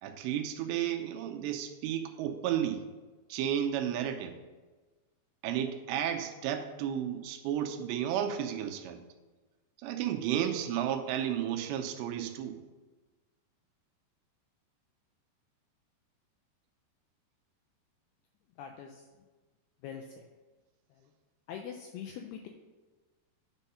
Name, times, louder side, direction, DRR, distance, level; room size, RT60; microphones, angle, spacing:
voice 1, 0.0-2.8 3.3-4.4 5.4-9.0 9.8-12.6, right 10 dB, 80° right, 6 dB, 2.8 m, -32 dB
voice 2, 18.6-19.1 19.8-20.3 20.9-21.1 21.5-22.5, left 8 dB, 90° left, 3 dB, 2.3 m, -43 dB
9.1 x 4.5 x 5.6 m, 1.3 s
omnidirectional pair, 5.1 m